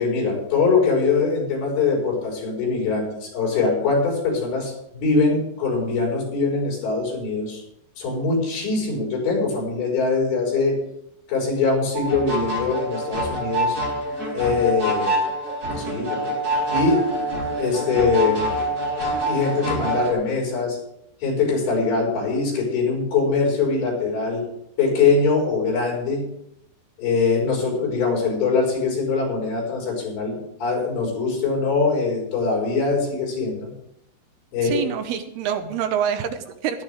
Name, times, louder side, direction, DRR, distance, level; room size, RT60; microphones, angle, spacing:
voice 1, 0.0-7.6 8.0-10.8 11.3-13.8 14.3-15.2 15.8-17.1 17.6-18.5 19.3-20.8 21.2-24.4 24.8-26.3 27.0-33.7 34.5-34.8, left 4 dB, 90° left, -3 dB, 7.2 m, -22 dB
sound 1, 11.9-20.1, right 1 dB, 20° right, 3.9 m, -26 dB
voice 2, 34.6-36.8, right 9 dB, 75° right, 8 dB, 2.7 m, -26 dB
17.0 x 13.0 x 3.5 m, 0.78 s
omnidirectional pair, 4.9 m